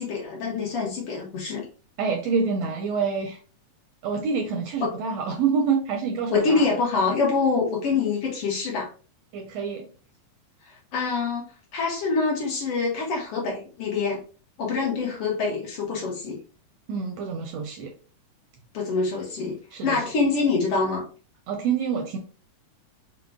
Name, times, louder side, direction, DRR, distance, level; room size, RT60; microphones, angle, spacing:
voice 1, 0.0-1.6 4.8-4.9 6.3-8.9 10.6-14.2 14.6-16.4 18.7-19.6 19.8-21.0, left 4 dB, 65° left, -2 dB, 1.6 m, -25 dB
voice 2, 2.0-3.4 4.0-6.6 9.3-9.9 16.9-17.9 19.7-20.0 21.5-22.2, right 5 dB, 75° right, 3 dB, 1.5 m, -27 dB
5.0 x 2.2 x 3.4 m, 0.38 s
omnidirectional pair, 3.4 m